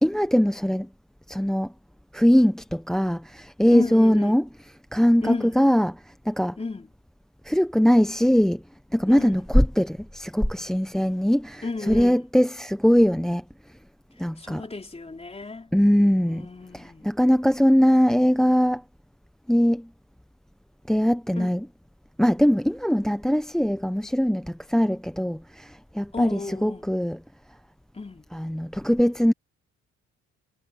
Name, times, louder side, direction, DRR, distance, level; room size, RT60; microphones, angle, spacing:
voice 1, 0.0-0.9 1.3-1.7 2.1-4.5 4.9-5.9 6.3-6.6 7.4-8.6 8.9-13.4 14.2-14.6 15.7-16.5 16.7-18.8 19.5-19.9 20.9-21.7 22.2-27.2 28.3-29.3, equal, ahead, 0.7 m, -21 dB
voice 2, 3.7-4.4 5.2-5.6 6.6-6.9 9.1-9.4 11.6-12.2 14.4-15.7 16.2-17.1 21.4-21.5 26.1-26.9 27.9-28.3, left 3 dB, 20° left, 3.9 m, -32 dB
cardioid pair, 90°, 30 cm